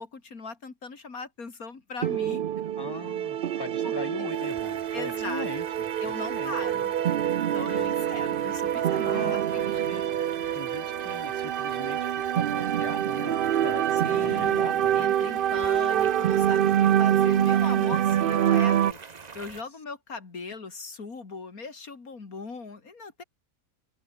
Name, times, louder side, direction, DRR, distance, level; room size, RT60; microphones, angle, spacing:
voice 1, 0.0-2.4 3.5-4.3 4.9-5.5 6.0-6.9 7.3-9.8 14.0-23.2, left 4 dB, 85° left, 3.2 m, -39 dB
sound 1, 2.0-18.9, right 10 dB, 60° right, 0.6 m, -26 dB
voice 2, 2.8-6.8 7.7-7.9 9.0-10.1 10.5-13.9 14.2-15.1 16.9-17.6, left 2 dB, 15° left, 3.6 m, -40 dB
sound 2, 4.3-19.6, right 5 dB, 30° right, 1.0 m, -46 dB
omnidirectional pair, 1.5 m